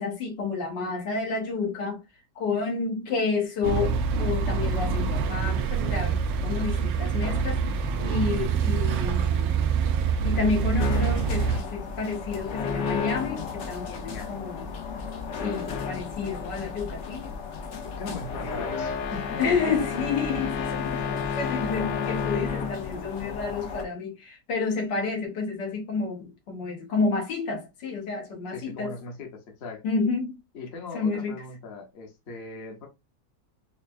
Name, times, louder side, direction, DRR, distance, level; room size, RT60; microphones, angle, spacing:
voice 1, 0.0-2.0 2.4-7.6 8.0-9.5 10.2-14.7 15.4-17.3 19.4-29.0 29.8-30.4 30.9-31.4, left 4 dB, 75° left, 1.9 m, -30 dB
sound 1, 3.6-11.6, right 5 dB, 90° right, 1.3 m, -25 dB
sound 2, 10.8-23.8, left 6 dB, 60° left, 0.7 m, -32 dB
voice 2, 14.0-14.4 17.8-19.5 28.5-29.8 30.5-32.9, left 3 dB, 45° left, 1.0 m, -39 dB
5.3 x 2.2 x 2.5 m
omnidirectional pair, 1.9 m